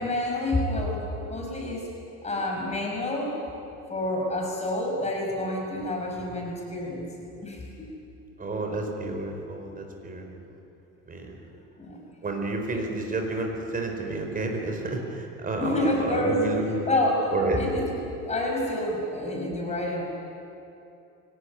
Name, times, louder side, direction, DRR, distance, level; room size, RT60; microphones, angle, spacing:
voice 1, 0.0-1.9 2.2-3.3 3.9-7.1 7.4-7.9 11.8-12.0 15.6-16.5 16.9-20.0, left 1 dB, 20° left, 0 dB, 5.9 m, -28 dB
voice 2, 8.4-10.3 11.1-11.4 12.2-16.9 17.3-17.6, right 2 dB, 30° right, 3 dB, 4.8 m, -30 dB
23.5 x 18.5 x 9.7 m, 2.8 s
cardioid pair, 130°, 30 cm